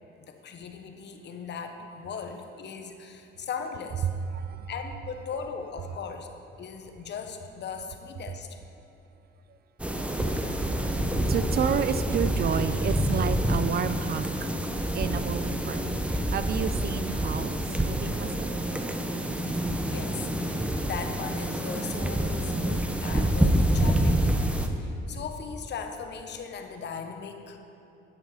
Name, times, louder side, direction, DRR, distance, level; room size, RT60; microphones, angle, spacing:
voice 1, 0.2-4.1 4.7-6.3 6.6-8.5 19.5-24.3 24.8-27.6, left 6 dB, 60° left, 5 dB, 1.0 m, -38 dB
voice 2, 4.3-4.7 9.5-9.6 10.5-10.6 11.3-14.5 14.9-18.6, right 8 dB, 50° right, 12 dB, 0.5 m, -31 dB
sound 1, 9.8-24.7, right 1 dB, 5° right, 0.7 m, -27 dB
11.0 x 6.7 x 4.9 m, 2.9 s
cardioid pair, 90°, 20 cm